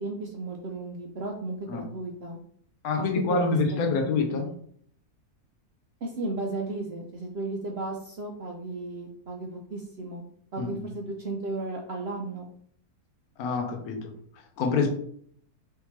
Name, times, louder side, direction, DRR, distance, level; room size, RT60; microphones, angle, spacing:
voice 1, 0.0-2.4 3.0-4.5 6.0-10.2 10.5-12.5, right 2 dB, 65° right, 1 dB, 0.6 m, -35 dB
voice 2, 2.8-4.5 10.6-10.8 13.4-14.1 14.6-14.9, left 4 dB, 70° left, 3 dB, 1.3 m, -26 dB
4.5 x 3.6 x 3.1 m, 0.62 s
omnidirectional pair, 1.7 m